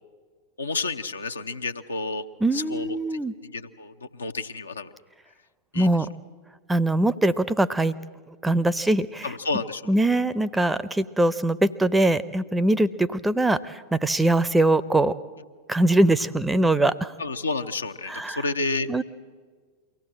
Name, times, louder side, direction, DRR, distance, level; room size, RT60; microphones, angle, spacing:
voice 1, 0.6-2.3 2.5-4.9 5.7-5.9 9.2-9.9 17.2-18.9, left 3 dB, 75° left, 6 dB, 0.8 m, -30 dB
voice 2, 2.4-3.3 5.7-6.1 6.7-7.9 8.4-9.3 9.9-15.1 15.7-17.1 18.1-18.5 18.9-19.0, right 1 dB, 5° right, 15 dB, 0.6 m, -22 dB
23.5 x 16.5 x 7.7 m, 1.5 s
figure-of-eight pair, 90°, 0 cm